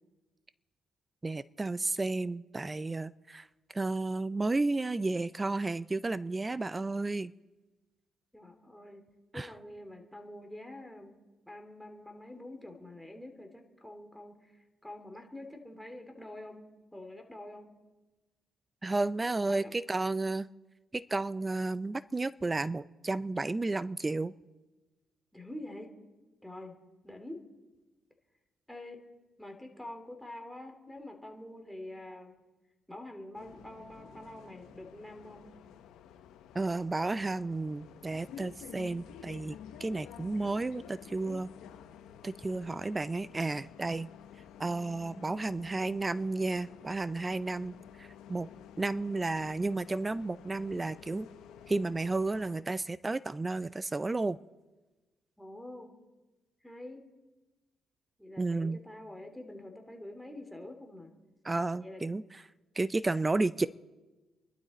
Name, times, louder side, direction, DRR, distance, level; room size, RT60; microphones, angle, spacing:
voice 1, 1.2-3.5 3.7-7.3 9.3-9.5 18.8-20.5 20.9-24.3 36.5-41.5 42.2-44.1 44.6-48.5 48.8-51.3 51.7-54.4 58.4-58.8 61.4-62.2 62.8-63.7, right 3 dB, 20° right, 16 dB, 0.4 m, -32 dB
voice 2, 8.3-9.0 9.3-11.2 11.5-16.6 16.9-17.7 19.2-19.7 25.3-25.9 26.4-26.7 27.0-27.4 28.7-29.0 29.4-32.4 32.9-35.5 55.4-55.9 56.6-57.0 58.2-61.1 61.8-62.0, left 1 dB, 5° left, 3 dB, 2.6 m, -46 dB
Bus, 33.3-52.6, left 9 dB, 90° left, 1.0 m, -51 dB
28.5 x 12.0 x 4.2 m, 1.2 s
cardioid pair, 90°, 0 cm